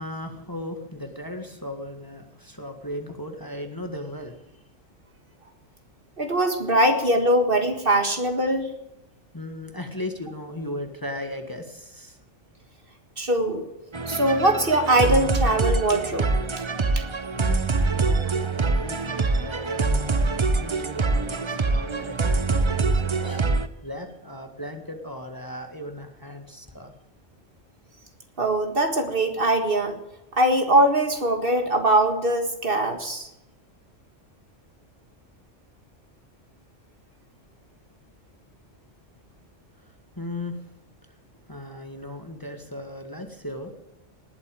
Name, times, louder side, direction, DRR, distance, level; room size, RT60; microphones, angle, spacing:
voice 1, 0.0-4.6 9.3-12.2 17.4-26.9 39.8-40.7 41.0-41.2 41.4-43.7, left 1 dB, 15° left, 4 dB, 1.7 m, -37 dB
voice 2, 6.2-8.7 13.2-13.6 14.1-16.3 17.0-17.1 28.4-30.0 30.3-33.3, right 1 dB, 45° right, 5 dB, 2.0 m, -22 dB
sound 1, 13.9-23.7, right 3 dB, 30° right, 0.7 m, -24 dB
19.5 x 8.3 x 8.9 m, 0.90 s
omnidirectional pair, 1.3 m